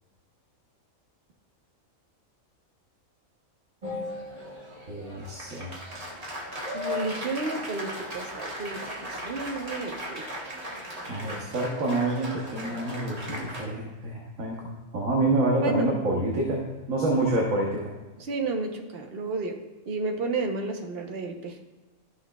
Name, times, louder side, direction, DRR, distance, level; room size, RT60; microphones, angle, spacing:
Applause, 3.8-13.6, left 1 dB, 30° right, 1.3 m, -37 dB
voice 1, 4.9-5.8 11.1-16.6 16.9-17.9, right 2 dB, 75° right, -2 dB, 1.5 m, -27 dB
voice 2, 6.7-10.2 15.6-15.9 18.2-19.6 19.9-21.6, right 3 dB, 50° right, 4 dB, 1.0 m, -31 dB
13.0 x 6.3 x 2.3 m, 1.2 s
omnidirectional pair, 1.4 m